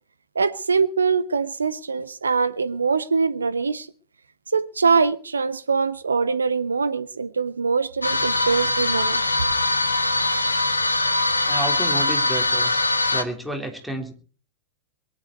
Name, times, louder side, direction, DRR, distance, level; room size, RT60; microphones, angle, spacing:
voice 1, 0.3-3.9 4.5-9.2, right 5 dB, 75° right, 1.0 m, -23 dB
sound 1, 8.0-13.2, left 2 dB, 80° left, 1.4 m, -22 dB
voice 2, 11.4-12.7 13.1-14.1, right 2 dB, ahead, 3.8 m, -30 dB
22.5 x 11.5 x 4.6 m
figure-of-eight pair, 90°, 0 cm